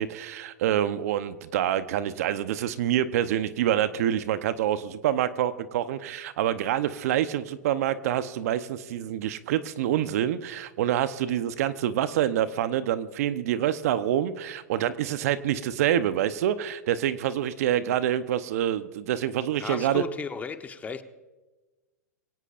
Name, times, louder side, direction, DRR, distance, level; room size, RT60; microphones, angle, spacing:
voice 1, 0.0-20.0, right 11 dB, 60° right, 12 dB, 0.9 m, -26 dB
voice 2, 19.6-21.0, left 5 dB, 15° left, 9 dB, 1.1 m, -34 dB
24.0 x 17.5 x 2.6 m, 1.2 s
hypercardioid pair, 110°, 9 cm